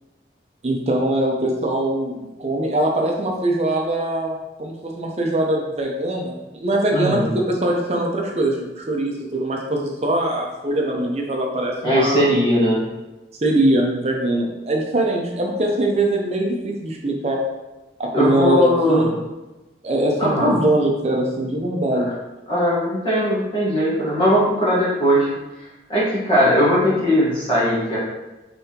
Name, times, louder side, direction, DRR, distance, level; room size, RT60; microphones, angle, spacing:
voice 1, 0.6-12.3 13.4-17.4 18.0-19.1 19.8-22.1, right 1 dB, 35° right, 0 dB, 0.6 m, -22 dB
voice 2, 6.9-7.3 11.8-12.8 18.1-19.1 20.2-20.5 21.9-22.0 22.5-25.3 25.9-28.0, equal, 30° left, -7 dB, 1.2 m, -19 dB
5.4 x 3.3 x 2.8 m, 1.1 s
head